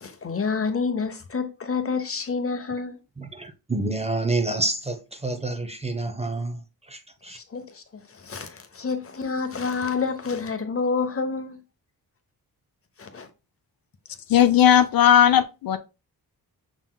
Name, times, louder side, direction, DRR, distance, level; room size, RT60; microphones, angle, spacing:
voice 1, 0.0-3.0 7.3-11.6 13.0-13.3, left 5 dB, 35° left, 0.8 m, -28 dB
voice 2, 3.2-7.4, right 2 dB, 15° right, 0.5 m, -28 dB
voice 3, 14.3-15.8, left 10 dB, 65° left, 0.5 m, -17 dB
5.9 x 3.8 x 2.2 m
wide cardioid pair, 105°, 38 cm